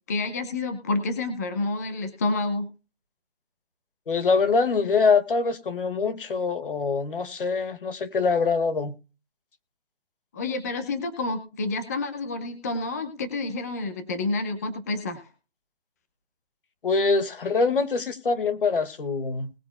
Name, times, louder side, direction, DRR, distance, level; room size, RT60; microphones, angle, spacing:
voice 1, 0.1-2.7 10.3-15.3, left 3 dB, 15° left, 0.8 m, -29 dB
voice 2, 4.1-8.9 16.8-19.5, left 4 dB, 60° left, 1.8 m, -24 dB
20.5 x 8.7 x 2.2 m
hypercardioid pair, 170°, 31 cm